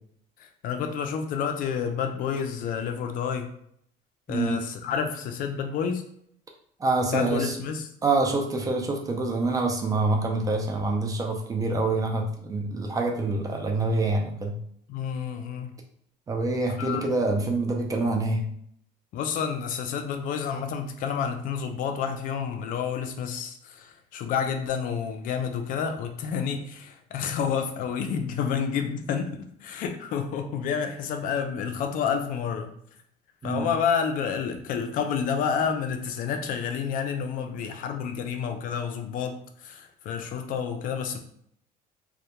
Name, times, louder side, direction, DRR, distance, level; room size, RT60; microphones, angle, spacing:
voice 1, 0.4-3.5 4.3-6.0 7.1-7.9 14.9-15.8 16.7-17.1 19.1-32.7 33.4-41.2, left 7 dB, 55° left, 6 dB, 0.4 m, -29 dB
voice 2, 4.3-4.6 6.8-7.5 8.0-14.6 16.3-18.5 33.4-33.7, right 2 dB, 20° right, 2 dB, 0.4 m, -26 dB
2.2 x 2.1 x 2.8 m, 0.68 s
cardioid pair, 135°, 17 cm